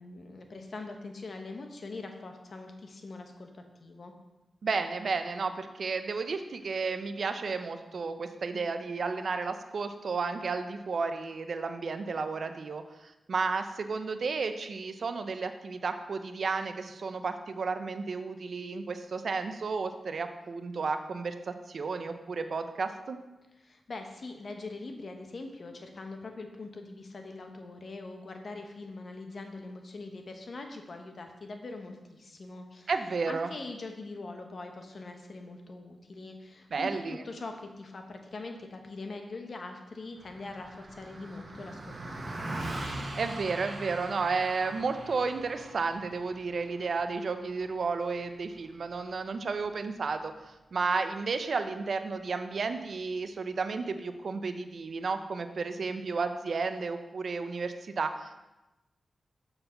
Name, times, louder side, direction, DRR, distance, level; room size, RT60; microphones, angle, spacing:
voice 1, 0.0-4.1 23.6-32.9 33.3-42.0 42.3-42.6, left 3 dB, 60° left, 4 dB, 1.0 m, -42 dB
voice 2, 4.6-23.2 32.9-33.5 36.7-37.2 43.2-58.5, right 4 dB, 70° right, 8 dB, 0.6 m, -32 dB
Car passing by, 40.2-49.8, right 1 dB, 50° right, 1.2 m, -42 dB
6.8 x 4.1 x 5.7 m, 1.0 s
cardioid pair, 55°, 0 cm